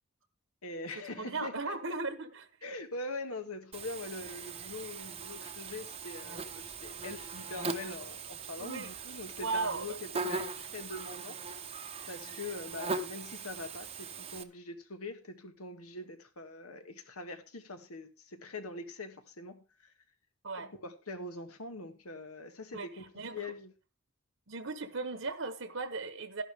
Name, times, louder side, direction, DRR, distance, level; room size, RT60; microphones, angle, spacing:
voice 1, 0.6-1.9 2.6-11.4 12.1-19.9 20.5-23.0 23.3-23.7, left 2 dB, 80° left, 1.7 m, -43 dB
voice 2, 1.2-2.5 8.6-8.9 9.4-10.0 20.4-20.7 22.7-22.9 23.1-23.4 24.5-26.4, right 3 dB, 60° right, 1.1 m, -36 dB
Buzz, 3.7-14.4, right 4 dB, 25° right, 0.8 m, -40 dB
12.5 x 11.0 x 3.5 m
head